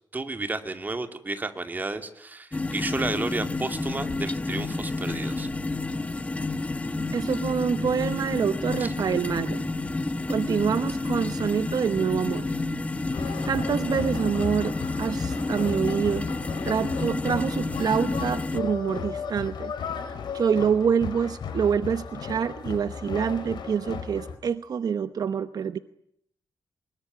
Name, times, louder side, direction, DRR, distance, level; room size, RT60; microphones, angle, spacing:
voice 1, 0.1-5.5 8.8-8.9, right 3 dB, 25° right, 7 dB, 2.6 m, -32 dB
sound 1, 2.5-18.6, left 2 dB, 20° left, 1.2 m, -30 dB
voice 2, 7.1-9.7 10.3-12.5 13.1-16.3 16.6-19.7 20.3-25.8, right 7 dB, 55° right, 12 dB, 0.9 m, -26 dB
sound 2, 13.1-24.3, left 6 dB, 80° left, 4.1 m, -35 dB
24.5 x 21.5 x 9.5 m, 0.72 s
wide cardioid pair, 125°, 8 cm